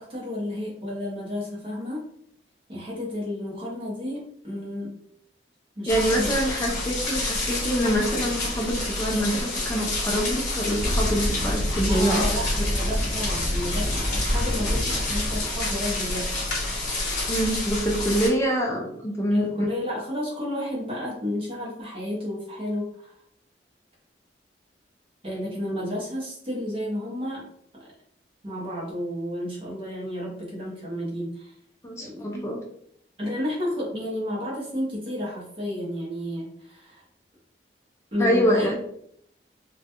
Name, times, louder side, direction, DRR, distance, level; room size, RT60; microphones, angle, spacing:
voice 1, 0.0-2.0 2.7-5.0 5.8-6.4 11.9-16.4 19.3-23.1 25.2-27.5 27.7-27.8 28.4-31.5 32.0-32.3 33.2-37.0 38.1-38.7, left 1 dB, 30° right, -5 dB, 0.7 m, -31 dB
sound 1, 5.9-18.3, left 2 dB, 50° left, 0.9 m, -29 dB
voice 2, 5.9-12.7 17.3-19.6 31.8-32.6 38.2-38.8, equal, 15° left, -1 dB, 0.4 m, -25 dB
sound 2, 10.8-15.5, equal, 75° left, 0.7 m, -28 dB
2.2 x 2.1 x 2.8 m, 0.71 s
head